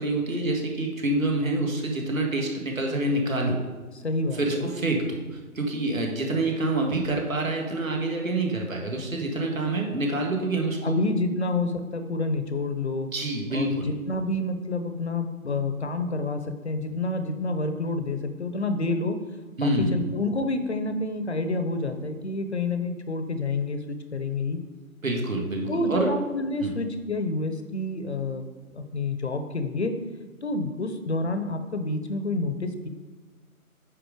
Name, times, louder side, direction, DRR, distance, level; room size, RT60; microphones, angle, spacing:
voice 1, 0.0-3.6 4.3-11.0 13.1-14.0 19.6-20.0 25.0-26.1 26.6-26.7, right 2 dB, 65° right, 1 dB, 1.7 m, -27 dB
voice 2, 4.0-4.7 10.8-13.1 13.5-19.2 19.6-24.6 25.7-28.5 28.7-29.9 30.4-32.9, left 2 dB, 50° left, 8 dB, 0.8 m, -28 dB
9.3 x 3.7 x 5.0 m, 1.3 s
figure-of-eight pair, 160°, 44 cm